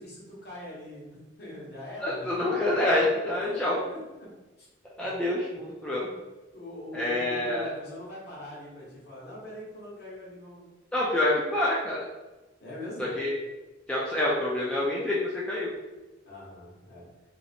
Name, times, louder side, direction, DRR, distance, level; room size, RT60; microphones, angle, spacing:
voice 1, 0.0-2.3 3.5-4.3 4.6-4.7 5.0-5.1 6.0-6.2 6.5-10.7 12.6-13.1 16.2-17.1, left 1 dB, 50° left, -6 dB, 1.1 m, -43 dB
voice 2, 2.0-3.8 5.0-6.0 6.9-7.7 10.9-12.1 13.0-13.3 13.9-15.7, left 1 dB, 5° left, -6 dB, 0.3 m, -27 dB
2.7 x 2.0 x 4.0 m, 1.1 s
head